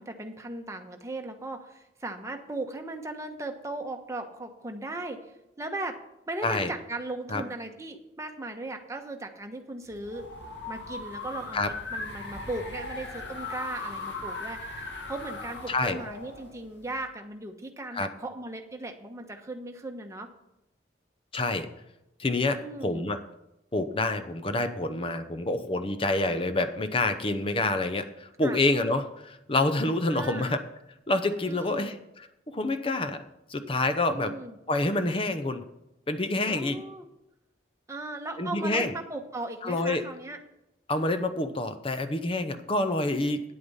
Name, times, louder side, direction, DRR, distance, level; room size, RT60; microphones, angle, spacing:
voice 1, 0.0-6.0 6.3-10.3 10.7-20.3 22.4-23.1 28.4-28.6 30.1-30.5 31.5-32.0 34.1-34.6 36.5-37.1 37.9-40.4, right 2 dB, 15° right, 4 dB, 1.1 m, -37 dB
sound 1, 9.9-17.1, left 3 dB, 80° left, 1.8 m, -39 dB
voice 2, 15.7-16.0 17.9-18.1 21.3-21.7 22.2-23.2 23.7-30.6 31.1-33.2 33.5-34.4 34.7-35.6 36.1-36.8 38.4-38.9 39.6-40.0 40.9-43.4, left 2 dB, 30° left, 9 dB, 0.7 m, -27 dB
9.7 x 8.4 x 5.5 m, 0.88 s
head